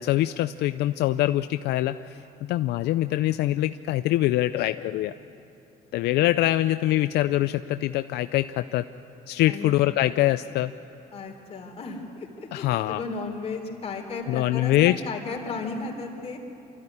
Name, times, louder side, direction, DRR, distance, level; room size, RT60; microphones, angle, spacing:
voice 1, 0.0-5.1 5.9-8.9 9.3-10.7 12.5-13.0 14.3-15.0, left 15 dB, 75° left, 11 dB, 0.5 m, -24 dB
voice 2, 11.1-16.4, left 4 dB, 35° left, 1 dB, 3.7 m, -34 dB
25.5 x 14.0 x 9.8 m, 2.8 s
cardioid pair, 110°, 17 cm